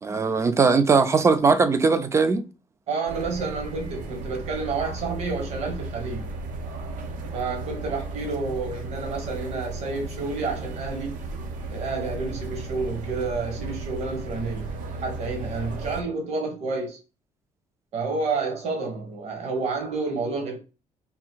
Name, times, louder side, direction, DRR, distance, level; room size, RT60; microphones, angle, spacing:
voice 1, 0.0-2.4, right 4 dB, 20° right, 0.4 m, -20 dB
voice 2, 2.9-6.3 7.3-11.3 11.7-17.0 17.9-20.6, right 3 dB, 55° right, 1.1 m, -30 dB
sound 1, 3.1-16.0, right 3 dB, 80° right, 0.7 m, -35 dB
3.5 x 2.5 x 4.4 m
cardioid pair, 165°, 13 cm